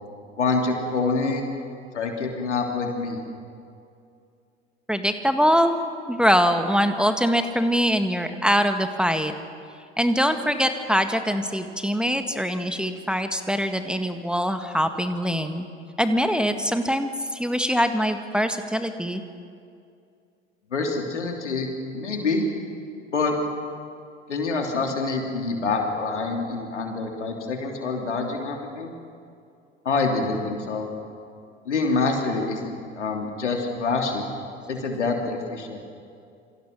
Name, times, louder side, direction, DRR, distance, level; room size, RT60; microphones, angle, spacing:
voice 1, 0.4-1.4 1.9-3.2 20.7-22.4 23.1-23.3 24.3-28.9 29.8-30.9 31.6-34.2 34.7-35.8, left 3 dB, 80° left, 2 dB, 3.2 m, -26 dB
voice 2, 4.9-5.8 6.1-9.3 10.0-15.7 16.0-19.2, equal, 5° right, 7 dB, 1.8 m, -23 dB
27.5 x 25.5 x 6.3 m, 2.4 s
figure-of-eight pair, 65°, 35 cm